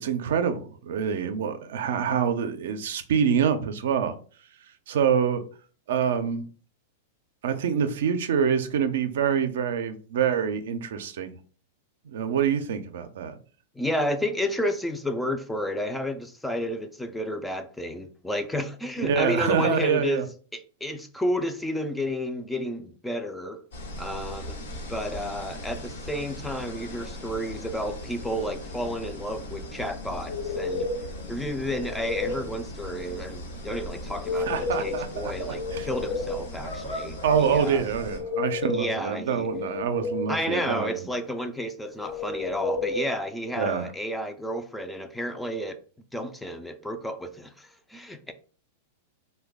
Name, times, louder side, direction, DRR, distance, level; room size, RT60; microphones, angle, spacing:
voice 1, 0.0-4.1 4.9-5.4 5.9-6.5 7.4-11.4 12.1-13.4 19.0-20.3 34.4-35.9 37.2-40.9 43.6-43.9, right 7 dB, 75° right, 0.4 m, -26 dB
voice 2, 13.8-20.3 20.5-23.6 24.0-24.6 24.9-30.9 31.3-37.9 38.7-39.5 40.3-45.8 46.1-48.3, left 1 dB, 5° left, 0.4 m, -31 dB
sound 1, 23.7-38.2, left 1 dB, 80° left, 1.1 m, -38 dB
sound 2, 30.3-31.1 31.6-32.5 34.1-35.1 35.4-36.5 37.9-39.0 39.4-40.4 42.0-43.0, left 3 dB, 60° left, 0.5 m, -31 dB
3.1 x 2.2 x 3.5 m
hypercardioid pair, 120°, 0 cm